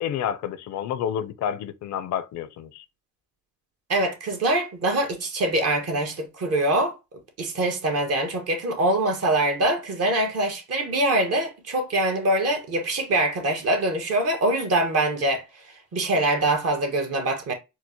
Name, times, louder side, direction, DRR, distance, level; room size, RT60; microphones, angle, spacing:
voice 1, 0.0-2.8, left 9 dB, 65° left, 0.5 m, -29 dB
voice 2, 3.9-7.0 7.4-17.5, right 1 dB, 55° right, 1.3 m, -24 dB
4.3 x 2.1 x 2.7 m
cardioid pair, 90°, 30 cm